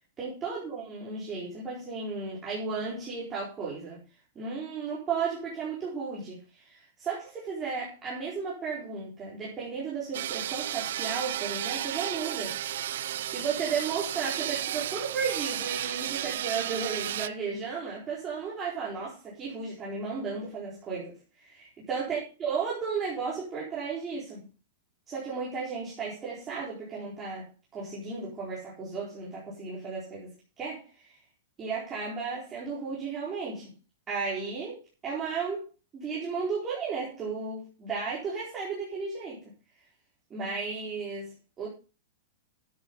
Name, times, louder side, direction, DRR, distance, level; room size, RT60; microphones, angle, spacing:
voice 1, 0.2-4.0 4.3-12.6 13.3-24.5 25.1-31.1 31.6-33.7 34.1-35.6 35.9-39.4 40.3-41.7, right 5 dB, 15° right, -6 dB, 4.4 m, -34 dB
sound 1, 10.1-17.3, right 12 dB, 60° right, 0.6 m, -33 dB
12.5 x 8.1 x 5.5 m, 0.33 s
supercardioid pair, 175°, 0 cm